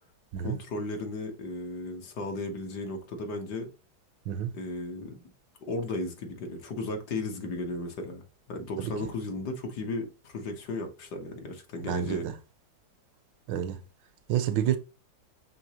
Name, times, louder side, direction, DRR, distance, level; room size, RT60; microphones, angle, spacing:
voice 1, 0.4-3.7 4.5-5.3 5.6-8.2 8.5-12.3, left 2 dB, 65° left, 1.5 m, -35 dB
voice 2, 11.8-12.3 13.5-13.8 14.3-14.8, right 10 dB, 80° right, 1.3 m, -28 dB
6.1 x 2.8 x 2.8 m
omnidirectional pair, 2.0 m